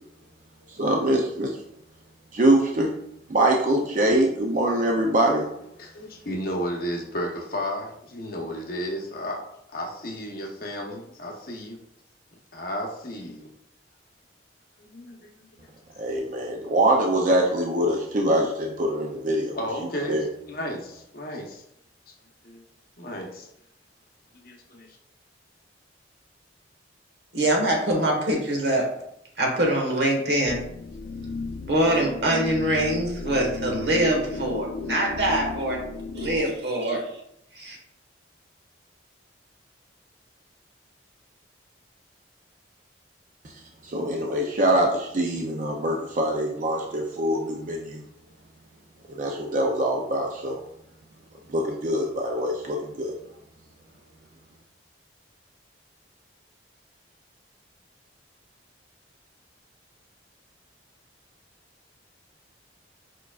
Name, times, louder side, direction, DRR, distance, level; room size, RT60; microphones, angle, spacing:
voice 1, 0.7-1.6 2.3-2.9 3.3-5.5 16.0-19.6 20.1-20.3 43.8-48.0 49.1-50.6 51.5-53.1, right 1 dB, 40° right, 1 dB, 0.4 m, -23 dB
voice 2, 5.8-9.4 9.7-11.8 12.5-13.5 14.8-15.5 19.3-21.6 22.1-22.2 22.4-22.6 23.0-23.5 24.4-25.0, equal, 50° left, 0 dB, 0.8 m, -33 dB
voice 3, 27.3-28.8 29.4-30.6 31.7-35.8 36.2-37.0 37.5-37.8, right 1 dB, 65° right, 0 dB, 1.3 m, -24 dB
sound 1, 30.4-36.4, left 4 dB, 80° left, 0.5 m, -34 dB
4.6 x 4.6 x 2.3 m, 0.76 s
head